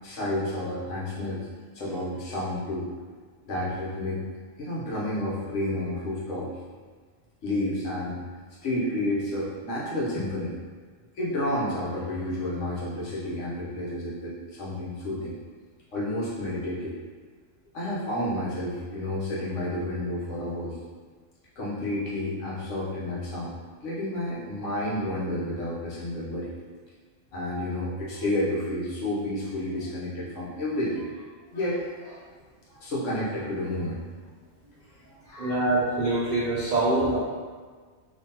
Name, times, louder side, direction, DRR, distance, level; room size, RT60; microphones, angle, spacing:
voice 1, 0.0-1.4 1.7-2.9 3.4-4.2 4.6-6.5 7.4-8.2 8.6-10.6 11.1-15.3 15.9-16.9 17.7-20.7 21.6-23.5 23.8-26.5 27.3-31.2 31.5-32.2 32.7-34.1 35.0-35.6, left 1 dB, 70° left, -7 dB, 1.3 m, -30 dB
voice 2, 35.4-37.2, right 2 dB, 75° right, -5 dB, 0.4 m, -24 dB
3.6 x 2.9 x 2.8 m, 1.5 s
omnidirectional pair, 1.4 m